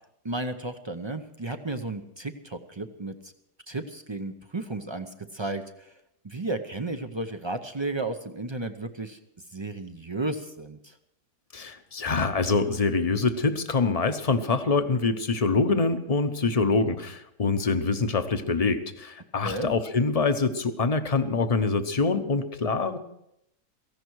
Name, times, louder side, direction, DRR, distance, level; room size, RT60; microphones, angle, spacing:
voice 1, 0.2-3.3 3.7-5.9 6.2-9.2 9.5-10.9 19.4-19.7, right 2 dB, 50° right, 7 dB, 0.3 m, -33 dB
voice 2, 11.5-23.0, left 4 dB, 30° left, 9 dB, 0.7 m, -25 dB
17.0 x 15.5 x 4.7 m, 0.79 s
omnidirectional pair, 1.7 m